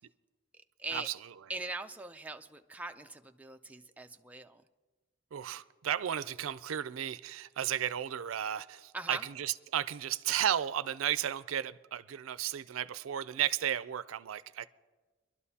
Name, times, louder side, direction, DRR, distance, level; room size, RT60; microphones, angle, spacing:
voice 1, 1.5-4.6 8.9-9.3, right 2 dB, 10° right, 0.4 m, -41 dB
voice 2, 5.3-14.7, right 10 dB, 90° right, 0.4 m, -34 dB
24.0 x 12.0 x 2.8 m
head